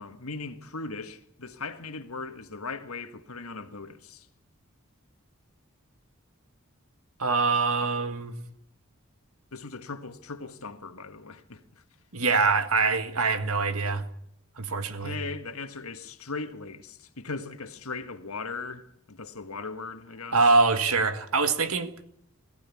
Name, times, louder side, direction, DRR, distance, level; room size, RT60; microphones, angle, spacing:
voice 1, 0.0-4.3 9.5-11.6 15.0-20.4, left 4 dB, 85° left, 1.7 m, -38 dB
voice 2, 7.2-8.3 12.1-14.1 14.6-15.2 20.3-22.1, right 4 dB, 90° right, 1.8 m, -24 dB
21.5 x 15.0 x 8.5 m
head